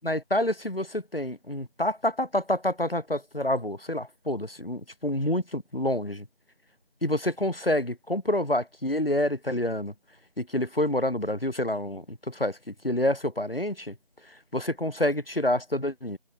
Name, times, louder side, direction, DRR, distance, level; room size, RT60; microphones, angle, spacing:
voice 1, 0.0-6.2 7.0-9.9 10.4-13.9 14.5-16.2, left 1 dB, 75° left, 7.0 m, -28 dB
figure-of-eight pair, 175°, 29 cm